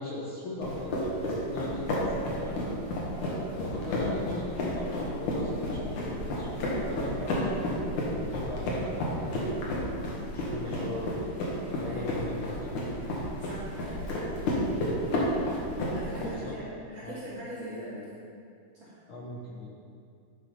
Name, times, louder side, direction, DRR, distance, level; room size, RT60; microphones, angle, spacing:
voice 1, 0.0-2.6 3.5-7.6 8.1-9.6 10.3-11.2 11.8-12.7 16.2-16.6 17.0-17.2 19.1-19.7, left 2 dB, 90° left, -5 dB, 1.1 m, -39 dB
sound 1, 0.6-16.3, left 1 dB, 65° left, 3.0 m, -31 dB
voice 2, 10.6-11.0 11.8-12.2 13.4-14.1 14.4-14.6 15.9-18.2 18.8-18.9, right 1 dB, 35° right, -11 dB, 2.6 m, -41 dB
12.0 x 6.3 x 5.4 m, 2.4 s
omnidirectional pair, 4.1 m